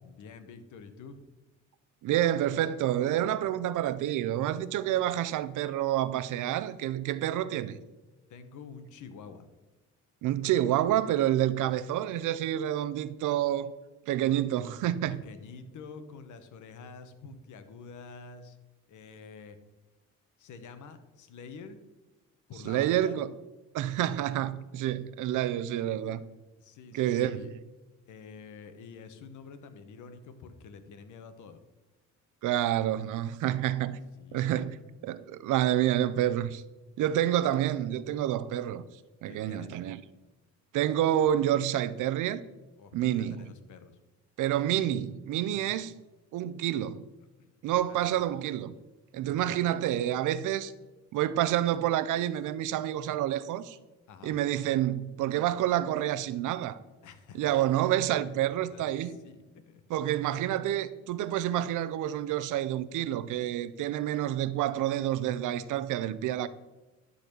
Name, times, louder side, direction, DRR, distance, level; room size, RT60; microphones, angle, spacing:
voice 1, 0.0-1.2 8.3-9.5 14.8-18.6 18.9-19.6 20.4-21.8 22.5-23.2 26.6-27.5 28.1-31.6 34.2-34.5 39.2-39.8 42.8-44.0 45.4-45.8 47.4-48.2 49.2-49.5 54.1-54.4 57.0-57.6 58.7-60.3, left 5 dB, 75° left, 1.2 m, -48 dB
voice 2, 2.0-7.8 10.2-13.7 14.1-15.2 22.7-23.3 23.7-26.2 26.9-27.5 32.4-34.0 34.3-36.6 37.0-38.8 39.2-40.0 40.7-42.4 42.9-43.5 44.4-45.9 46.3-47.1 47.6-48.7 49.1-50.7 51.1-53.8 54.2-56.8 57.4-59.1 59.9-66.5, right 12 dB, 80° right, 0.6 m, -28 dB
12.0 x 4.2 x 6.8 m
cardioid pair, 90°, 30 cm